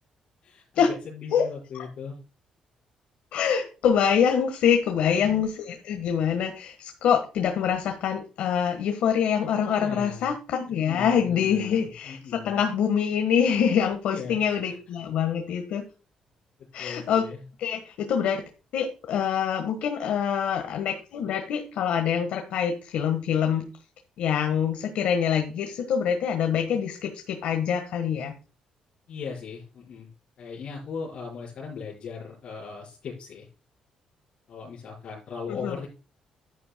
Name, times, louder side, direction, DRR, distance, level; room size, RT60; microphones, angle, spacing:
voice 1, 0.4-2.2 5.0-5.5 9.7-10.3 10.7-12.6 14.0-14.6 16.6-17.4 29.1-30.1 30.4-33.5 34.5-35.9, left 5 dB, 60° left, -8 dB, 4.6 m, -38 dB
voice 2, 3.3-15.8 16.7-17.3 17.6-18.4 18.7-23.7 24.2-28.3 35.5-35.8, left 8 dB, 80° left, 5 dB, 1.4 m, -25 dB
11.0 x 10.5 x 2.2 m, 0.32 s
cardioid pair, 135°, 2 cm